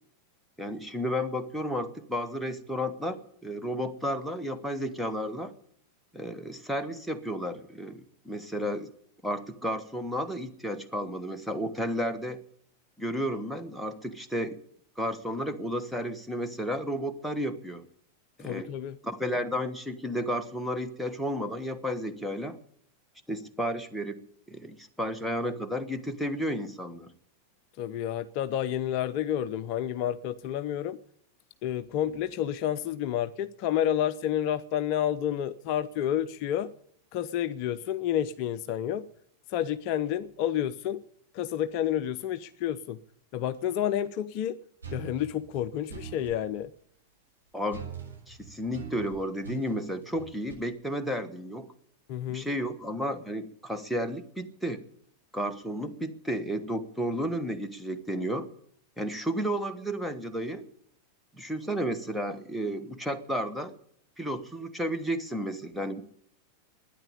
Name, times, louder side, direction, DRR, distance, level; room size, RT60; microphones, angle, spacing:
voice 1, 0.6-5.5 6.1-8.9 9.2-12.4 13.0-14.6 15.0-17.8 18.4-18.7 19.0-22.6 23.3-24.2 24.5-27.1 47.5-47.9 48.3-51.7 52.3-54.8 55.3-58.5 59.0-60.7 61.3-63.8 64.2-66.0, equal, ahead, 1.3 m, -32 dB
voice 2, 18.4-19.0 27.8-31.0 31.6-36.7 37.1-39.1 39.5-41.0 41.3-43.0 43.3-44.6 44.9-46.7 52.1-52.5, left 10 dB, 45° left, 0.5 m, -30 dB
sound 1, 44.8-46.4 47.7-50.5, right 6 dB, 80° right, 6.4 m, -42 dB
12.0 x 10.0 x 9.8 m
figure-of-eight pair, 90°, 0 cm